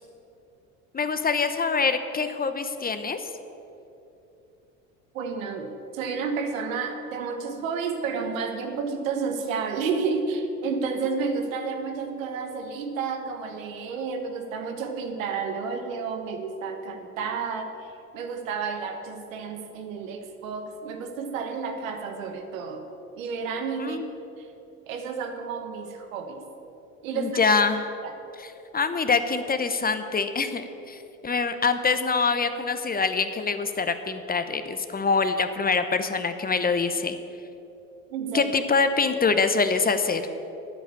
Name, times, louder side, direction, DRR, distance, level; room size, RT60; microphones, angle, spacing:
voice 1, 0.9-3.3 23.8-24.1 27.1-28.0 28.4-37.2 38.3-40.2, left 4 dB, 25° left, 9 dB, 0.9 m, -25 dB
voice 2, 5.1-22.8 23.2-24.0 24.4-24.5 24.9-26.4 27.0-27.4 28.0-28.1 38.1-38.5, right 5 dB, 85° right, 5 dB, 1.4 m, -31 dB
9.9 x 8.9 x 8.4 m, 2.9 s
hypercardioid pair, 75°, 39 cm